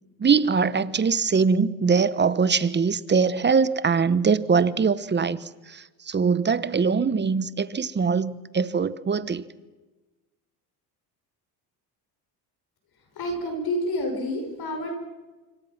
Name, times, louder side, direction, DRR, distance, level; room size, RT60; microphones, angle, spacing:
voice 1, 0.2-9.4, right 5 dB, 25° right, 1.1 m, -22 dB
voice 2, 13.1-14.9, left 1 dB, 50° left, 6.3 m, -28 dB
26.5 x 25.0 x 6.0 m
supercardioid pair, 85°, 46 cm